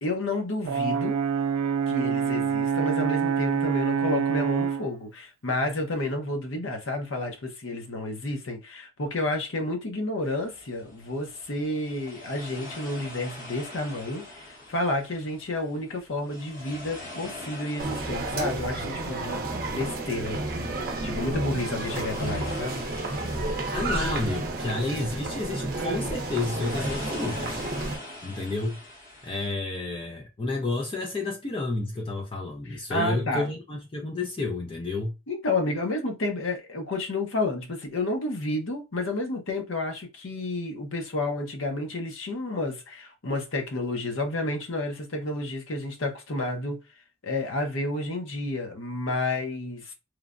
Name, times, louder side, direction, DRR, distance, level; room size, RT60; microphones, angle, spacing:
voice 1, 0.0-1.2 1.9-20.4 21.0-22.9 32.7-33.5 35.3-46.8 47.2-49.9, left 2 dB, 80° left, 0.7 m, -30 dB
Brass instrument, 0.7-4.9, right 7 dB, 90° right, 0.3 m, -26 dB
sound 1, 10.2-29.5, left 1 dB, 45° left, 0.9 m, -44 dB
sound 2, 17.8-28.0, right 2 dB, 45° right, 0.6 m, -31 dB
voice 2, 23.7-27.5 28.2-28.8 29.2-35.1, left 2 dB, 25° left, 0.4 m, -30 dB
3.1 x 2.1 x 2.4 m
head